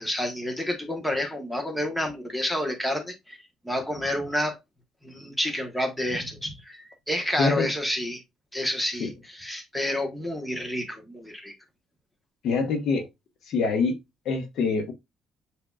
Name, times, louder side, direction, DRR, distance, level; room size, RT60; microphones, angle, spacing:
voice 1, 0.0-3.4 3.6-4.6 5.0-8.2 8.5-11.5, left 1 dB, 5° left, 1.1 m, -29 dB
voice 2, 7.4-7.7 9.0-9.1 12.4-13.1 13.5-14.0 14.2-14.9, left 4 dB, 65° left, 1.2 m, -25 dB
7.6 x 2.8 x 2.3 m
cardioid pair, 145°, 0 cm